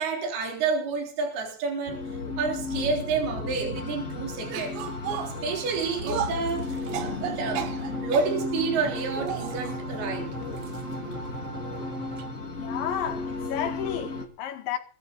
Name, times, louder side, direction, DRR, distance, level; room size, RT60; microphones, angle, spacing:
voice 1, 0.0-4.8 5.4-7.7 8.0-10.3, right 4 dB, 60° right, 5.5 m, -29 dB
sound 1, 1.9-14.2, left 3 dB, 30° left, 1.7 m, -34 dB
sound 2, 4.5-8.4 9.1-9.8 10.6-10.8 11.1-11.2 12.2-12.3, right 9 dB, 80° right, 3.8 m, -34 dB
sound 3, 6.9-12.3, right 4 dB, 35° right, 3.1 m, -40 dB
voice 2, 12.6-14.8, left 9 dB, 80° left, 4.2 m, -32 dB
21.5 x 12.5 x 4.1 m
omnidirectional pair, 5.2 m